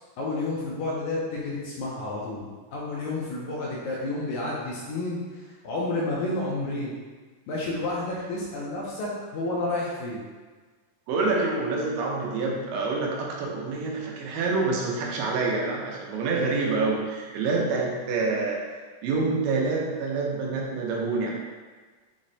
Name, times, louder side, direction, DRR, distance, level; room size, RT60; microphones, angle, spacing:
voice 1, 0.2-7.0 7.5-10.3, left 2 dB, 80° left, -5 dB, 1.8 m, -30 dB
voice 2, 11.1-18.6 19.0-21.3, right 3 dB, 85° right, -2 dB, 2.3 m, -27 dB
6.0 x 2.0 x 2.6 m, 1.4 s
omnidirectional pair, 3.8 m